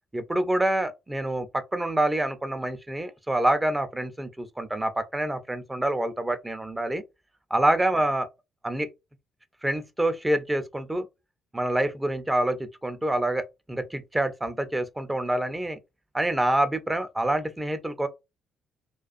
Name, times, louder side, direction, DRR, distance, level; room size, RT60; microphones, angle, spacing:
voice 1, 0.1-7.0 7.5-8.3 8.6-8.9 9.6-11.1 11.5-15.8 16.1-18.1, right 1 dB, 15° right, 0.5 m, -26 dB
2.3 x 2.3 x 2.4 m
hypercardioid pair, 50°, 0 cm